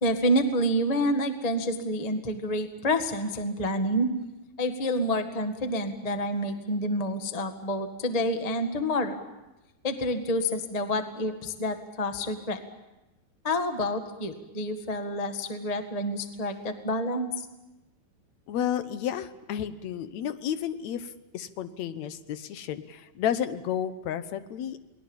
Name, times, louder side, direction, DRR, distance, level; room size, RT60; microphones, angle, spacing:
voice 1, 0.0-4.1 4.6-9.2 9.8-12.6 13.4-17.3, equal, 35° left, 7 dB, 0.6 m, -28 dB
voice 2, 18.5-24.8, left 9 dB, 65° left, 11 dB, 2.1 m, -32 dB
29.0 x 20.5 x 7.2 m, 1.0 s
omnidirectional pair, 3.9 m